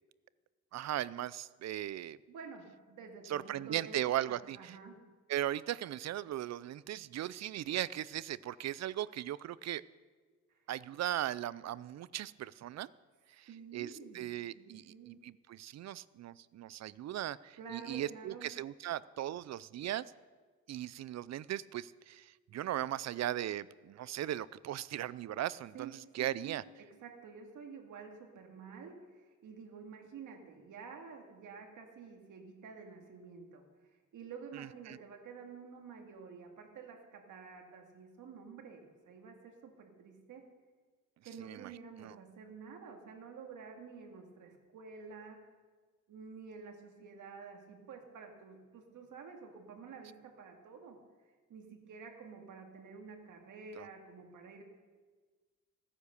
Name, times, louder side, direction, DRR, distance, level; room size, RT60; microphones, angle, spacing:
voice 1, 0.7-2.2 3.3-4.8 5.3-9.8 10.7-12.9 13.4-20.0 20.7-26.6 34.6-35.0 41.4-41.7 42.0-42.1 53.8-53.9, right 12 dB, 60° right, 19 dB, 0.5 m, -38 dB
voice 2, 2.3-5.0 10.5-10.6 13.5-14.3 14.5-15.2 17.6-18.5 25.7-33.6 34.1-40.5 41.2-45.4 46.1-51.0 51.2-54.6, right 5 dB, 80° right, 3 dB, 2.2 m, -50 dB
16.0 x 9.9 x 6.8 m, 1.4 s
cardioid pair, 120°, 30 cm